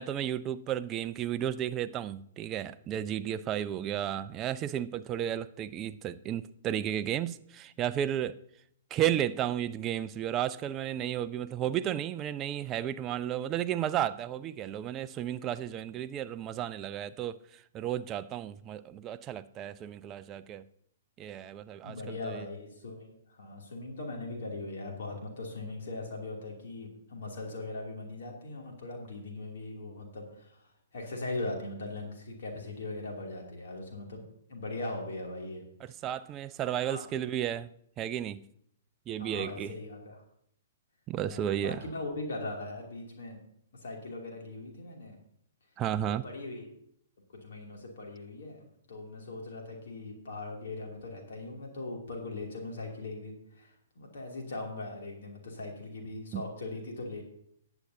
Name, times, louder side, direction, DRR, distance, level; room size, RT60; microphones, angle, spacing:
voice 1, 0.0-8.4 8.9-20.6 21.2-22.5 35.8-37.7 38.0-38.4 39.1-39.7 41.1-41.8 45.8-46.2 56.3-56.4, right 10 dB, 25° right, 0.4 m, -33 dB
voice 2, 21.8-34.2 34.5-35.6 36.0-36.1 36.9-37.1 39.2-40.2 41.2-43.4 43.8-45.2 46.0-46.7 47.3-48.6 48.9-57.2, left 2 dB, 55° left, 2.6 m, -40 dB
19.0 x 8.0 x 2.7 m
figure-of-eight pair, 115°, 0 cm